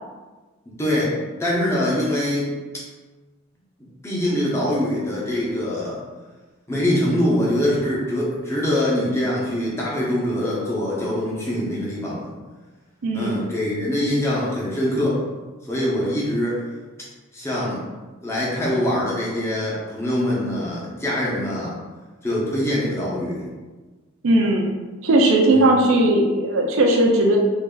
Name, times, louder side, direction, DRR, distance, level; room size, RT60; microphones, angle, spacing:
voice 1, 0.8-1.1 1.4-2.5 4.0-6.0 6.7-12.3 13.1-15.2 15.7-16.6 17.3-17.8 18.2-21.8 22.2-23.5 25.5-25.7, left 1 dB, 15° left, -6 dB, 0.9 m, -23 dB
voice 2, 13.0-13.4 24.2-24.7 25.0-27.4, right 1 dB, 70° right, 1 dB, 0.5 m, -17 dB
3.2 x 2.7 x 3.8 m, 1.3 s
head